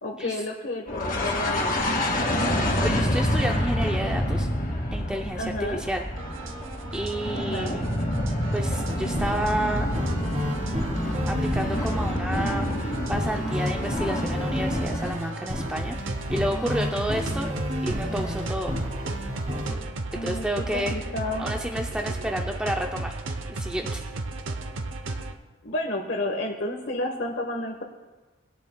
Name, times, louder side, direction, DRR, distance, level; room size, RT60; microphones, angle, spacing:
voice 1, 0.0-2.1 5.4-5.8 7.3-7.8 20.1-20.4 20.7-21.5 25.6-27.8, left 1 dB, 65° left, 0 dB, 1.1 m, -31 dB
sound 1, 0.9-15.1, left 1 dB, 45° left, 2.0 m, -27 dB
voice 2, 2.8-4.5 4.9-6.0 6.9-7.9 8.5-9.9 11.0-17.5 17.8-18.7 20.2-20.9 21.4-23.2 23.5-24.0, equal, 5° right, 2 dB, 0.4 m, -30 dB
sound 2, 6.2-25.4, right 2 dB, 75° right, 0.7 m, -35 dB
sound 3, 8.9-19.7, equal, 35° right, 2.7 m, -31 dB
20.0 x 11.0 x 2.2 m, 1.3 s
head